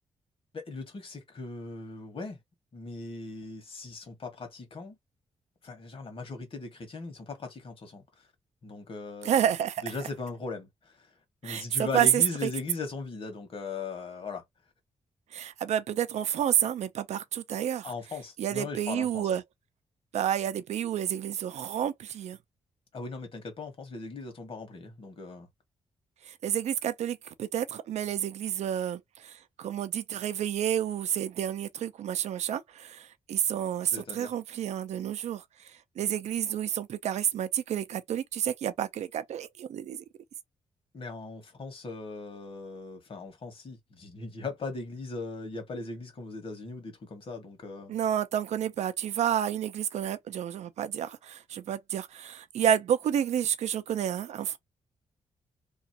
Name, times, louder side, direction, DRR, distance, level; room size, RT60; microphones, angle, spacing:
voice 1, 0.5-2.4 2.7-4.9 5.6-8.0 8.6-9.5 9.8-11.1 11.4-14.4 17.8-19.3 22.9-25.5 33.8-34.3 40.9-47.9, left 3 dB, 50° left, 1.5 m, -39 dB
voice 2, 9.2-9.9 11.4-12.5 15.3-17.9 18.4-19.4 20.1-22.4 26.3-35.4 36.0-40.0 47.9-54.6, right 10 dB, 75° right, 0.5 m, -30 dB
3.0 x 2.5 x 2.8 m
cardioid pair, 90°, 12 cm